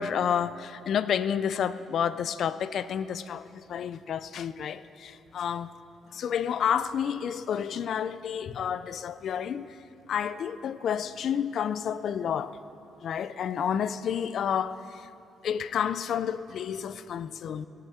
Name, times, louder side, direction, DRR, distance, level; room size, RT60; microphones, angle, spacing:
voice 1, 0.0-5.7 6.1-9.7 10.1-12.6 13.0-14.8 15.4-17.7, left 8 dB, 65° left, 0.4 m, -30 dB
18.0 x 9.6 x 5.6 m
cardioid pair, 90°, 0 cm